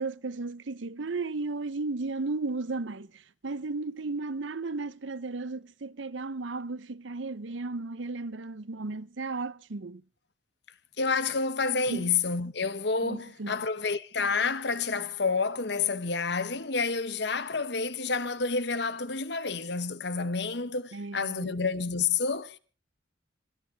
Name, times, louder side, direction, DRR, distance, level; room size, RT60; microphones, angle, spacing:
voice 1, 0.0-10.0 11.9-12.1 13.0-13.6 20.9-21.5, right 3 dB, 80° right, 0.8 m, -34 dB
voice 2, 11.0-22.6, left 4 dB, 60° left, 1.2 m, -29 dB
26.5 x 10.5 x 4.0 m
head